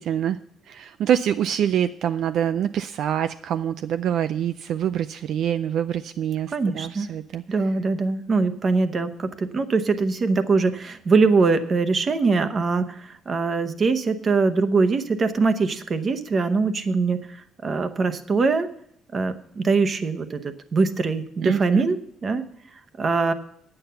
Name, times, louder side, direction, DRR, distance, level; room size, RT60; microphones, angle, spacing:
voice 1, 0.0-7.4 21.4-21.9, right 9 dB, 60° right, 11 dB, 0.4 m, -25 dB
voice 2, 6.5-7.1 7.5-18.7 19.1-22.4 23.0-23.3, right 4 dB, 30° right, 10 dB, 0.8 m, -22 dB
10.5 x 8.8 x 5.6 m, 0.68 s
cardioid pair, 175°, 0 cm